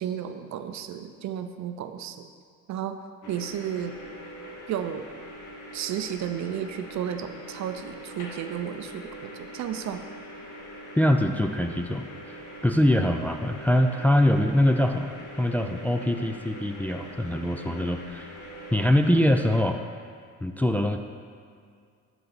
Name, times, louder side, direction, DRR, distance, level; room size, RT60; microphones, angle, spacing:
voice 1, 0.0-2.3 2.7-3.0 3.3-3.9 4.7-5.1 5.7-10.0, right 9 dB, 65° right, 8 dB, 0.5 m, -33 dB
sound 1, 3.2-19.6, equal, 80° left, 1.4 m, -43 dB
voice 2, 11.0-18.3 18.7-19.8 20.4-21.0, left 1 dB, 5° left, 5 dB, 0.3 m, -23 dB
11.0 x 4.0 x 4.0 m, 2.2 s
cardioid pair, 90°, 30 cm